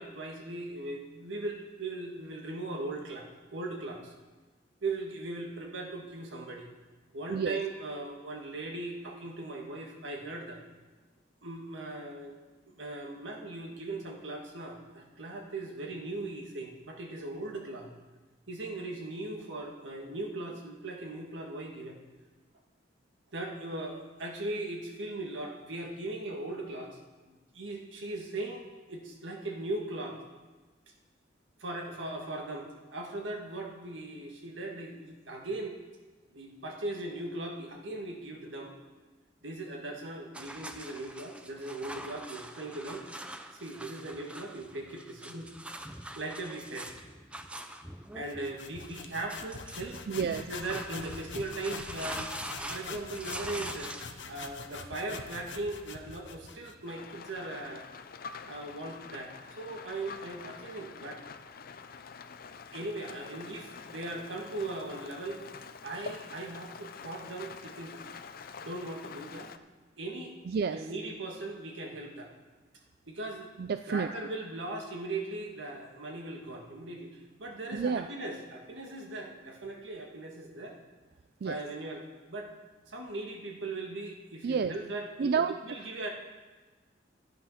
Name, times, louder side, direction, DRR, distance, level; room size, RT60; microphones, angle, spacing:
voice 1, 0.0-4.1 4.8-6.7 7.1-10.6 11.4-12.3 12.7-17.9 18.5-22.0 23.3-30.2 31.6-35.8 36.3-38.7 39.4-43.0 43.5-45.5 46.2-46.9 48.1-52.3 52.7-53.9 54.3-57.8 58.5-61.2 62.7-65.4 65.8-68.0 68.6-69.5 70.0-70.3 70.7-72.3 73.1-73.5 73.9-80.8 81.4-82.5 82.9-85.3 85.6-86.1, right 2 dB, 85° right, 1 dB, 1.9 m, -39 dB
sound 1, 40.3-54.2, right 1 dB, 5° right, 0.7 m, -44 dB
sound 2, 48.2-56.8, left 4 dB, 75° left, 0.9 m, -44 dB
voice 2, 50.1-50.5 70.5-70.8 73.6-74.1 77.7-78.1 81.4-81.6 84.4-84.7 85.2-85.8, right 6 dB, 55° right, 10 dB, 0.3 m, -30 dB
Rain, 56.9-69.6, left 5 dB, 50° left, 0.5 m, -46 dB
12.0 x 9.2 x 5.8 m, 1.3 s
head